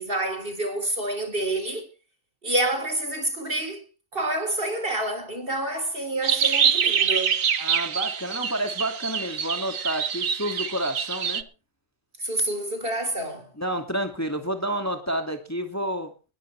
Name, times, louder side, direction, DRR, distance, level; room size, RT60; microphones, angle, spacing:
voice 1, 0.0-1.9 2.4-3.8 4.1-7.3 12.2-13.5, right 1 dB, 40° right, 4.3 m, -28 dB
sound 1, 6.2-11.4, right 7 dB, 80° right, 1.5 m, -25 dB
voice 2, 7.6-11.5 13.6-16.1, right 1 dB, 10° left, 2.4 m, -29 dB
20.5 x 12.0 x 3.4 m
omnidirectional pair, 1.4 m